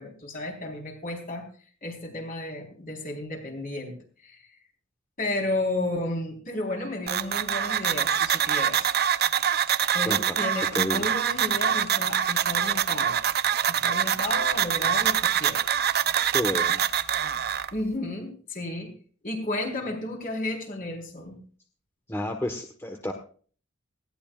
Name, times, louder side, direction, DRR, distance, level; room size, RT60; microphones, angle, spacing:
voice 1, 0.0-1.5 1.8-4.4 5.2-8.9 9.9-13.2 13.7-15.6 17.7-19.0 19.2-21.4, left 2 dB, 40° left, 2 dB, 4.3 m, -32 dB
sound 1, 7.1-17.7, right 9 dB, 50° right, 0.7 m, -25 dB
voice 2, 10.0-10.5 10.7-11.0 16.3-16.8 22.1-23.1, left 1 dB, 10° left, 4 dB, 1.3 m, -30 dB
19.5 x 16.5 x 2.5 m, 0.43 s
head